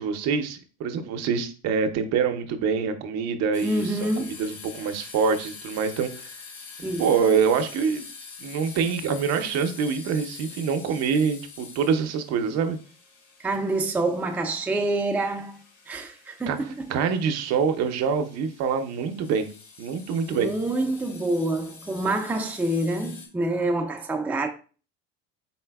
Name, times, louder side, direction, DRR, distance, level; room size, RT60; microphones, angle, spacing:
voice 1, 0.0-4.0 4.4-6.3 7.0-8.1 8.4-12.8 16.5-16.6 16.9-19.5 19.8-20.5, right 6 dB, 55° right, 0.7 m, -25 dB
sound 1, 3.5-23.3, left 5 dB, 50° left, 1.4 m, -45 dB
voice 2, 3.6-4.4 6.8-7.0 13.4-16.9 20.3-24.5, right 2 dB, 5° right, 0.4 m, -27 dB
4.2 x 3.8 x 2.3 m
supercardioid pair, 95°, 31 cm